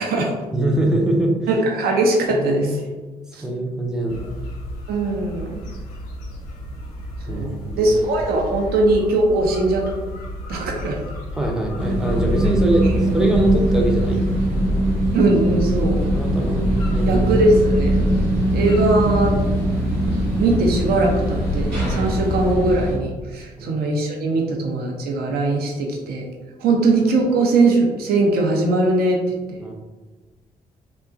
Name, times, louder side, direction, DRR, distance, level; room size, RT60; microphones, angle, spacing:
voice 1, 0.0-0.3 1.5-2.8 3.3-3.4 4.9-5.6 7.3-7.5 7.7-9.9 10.5-11.0 15.1-16.0 17.1-18.1 18.5-19.4 20.4-26.3 26.6-29.6, right 2 dB, 50° right, 0 dB, 0.6 m, -20 dB
voice 2, 0.5-1.5 2.3-2.8 3.4-4.3 7.3-7.9 11.3-14.8 16.1-17.3 23.6-23.7 29.6-29.7, right 1 dB, 5° right, 0 dB, 0.5 m, -23 dB
sound 1, 4.1-22.5, left 1 dB, 70° left, 0.5 m, -33 dB
sound 2, 11.8-23.0, right 1 dB, 75° right, 0.9 m, -21 dB
2.9 x 2.2 x 2.4 m, 1.2 s
figure-of-eight pair, 40°, 20 cm